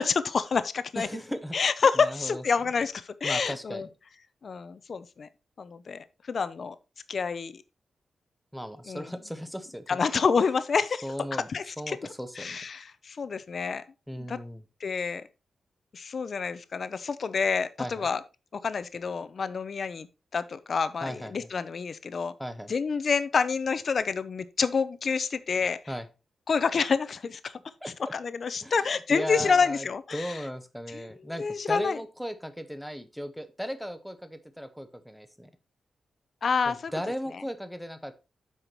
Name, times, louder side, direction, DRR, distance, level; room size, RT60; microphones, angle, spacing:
voice 1, 0.0-1.1 1.5-3.9 4.4-5.3 5.6-6.8 7.1-7.6 8.9-9.1 9.9-11.0 11.5-12.0 12.4-13.8 14.2-14.4 14.8-15.2 15.9-18.2 18.6-20.1 20.3-22.3 22.7-25.8 26.5-27.5 28.1-30.4 30.9-31.1 31.4-32.0 36.4-36.9, left 5 dB, 45° left, 0.7 m, -28 dB
voice 2, 1.0-1.6 1.9-2.4 3.2-3.9 8.5-10.0 11.0-11.5 11.8-12.6 14.1-14.6 17.8-18.1 21.0-21.5 22.4-22.7 25.9-26.1 27.8-28.1 28.6-29.9 30.1-35.5 36.6-38.1, equal, ahead, 0.8 m, -36 dB
8.2 x 5.7 x 4.4 m
wide cardioid pair, 170°, 0 cm